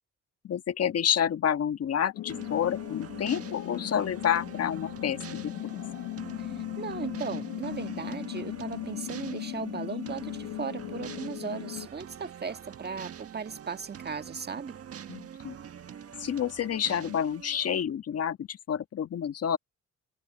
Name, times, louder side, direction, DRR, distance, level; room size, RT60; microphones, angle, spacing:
voice 1, 0.4-5.5 15.1-15.5 16.2-19.6, left 9 dB, 55° left, 1.4 m, -29 dB
sound 1, 2.1-11.9, left 16 dB, 80° left, 0.5 m, -38 dB
sound 2, 2.3-17.8, right 8 dB, 50° right, 1.5 m, -45 dB
voice 2, 6.4-14.8, right 6 dB, 35° right, 1.5 m, -37 dB
cardioid pair, 90°, 30 cm